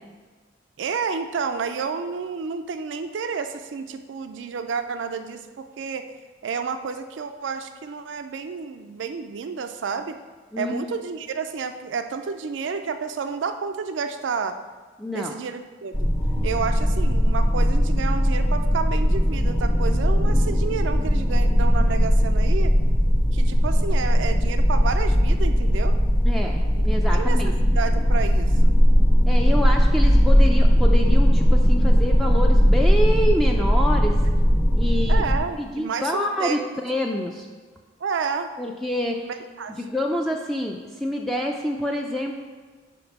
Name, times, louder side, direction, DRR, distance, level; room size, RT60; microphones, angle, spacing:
voice 1, 0.8-6.0 6.4-10.2 10.6-14.6 15.1-16.1 16.4-22.7 23.3-26.0 27.1-28.7 35.1-36.6 38.0-38.5 39.2-39.8, right 5 dB, 80° right, 8 dB, 0.4 m, -30 dB
voice 2, 10.5-10.9 15.0-15.3 26.2-27.5 29.3-34.2 34.8-35.3 35.6-37.5 38.6-39.2 39.8-42.3, equal, ahead, 0 dB, 0.4 m, -27 dB
sound 1, 15.9-35.4, equal, 25° left, 0.8 m, -18 dB
5.2 x 4.9 x 5.8 m, 1.4 s
head